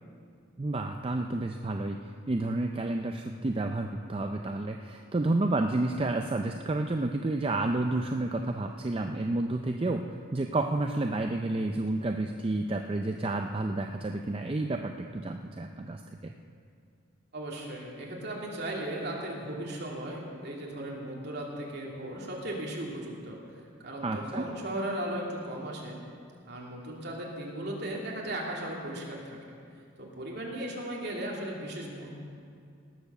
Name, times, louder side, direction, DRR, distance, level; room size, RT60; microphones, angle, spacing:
voice 1, 0.6-16.3 24.0-24.5, right 2 dB, 25° right, 4 dB, 0.4 m, -30 dB
voice 2, 17.3-23.4 23.8-26.0 26.5-29.4 30.0-32.1, right 1 dB, 50° right, -3 dB, 2.6 m, -36 dB
18.5 x 7.0 x 6.7 m, 2.4 s
head